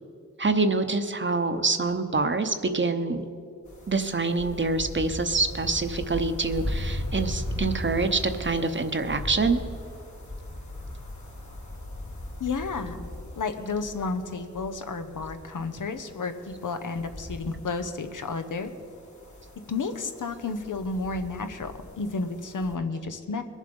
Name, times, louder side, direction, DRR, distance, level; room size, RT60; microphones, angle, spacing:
voice 1, 0.4-3.3 3.9-9.6, right 3 dB, 40° right, 8 dB, 0.8 m, -26 dB
sound 1, 3.7-22.8, left 1 dB, 70° left, 2.5 m, -38 dB
voice 2, 12.4-13.1 13.4-18.7 19.7-23.4, left 4 dB, 90° left, 8 dB, 0.9 m, -31 dB
21.5 x 7.4 x 5.3 m, 2.5 s
wide cardioid pair, 80°, 31 cm